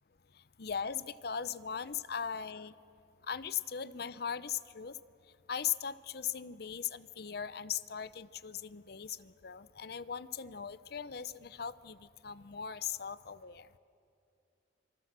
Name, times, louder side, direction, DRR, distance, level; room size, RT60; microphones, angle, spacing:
voice 1, 0.6-2.7 3.3-5.0 5.5-13.7, left 8 dB, 60° left, 16 dB, 0.7 m, -39 dB
26.5 x 23.5 x 7.5 m, 2.6 s
head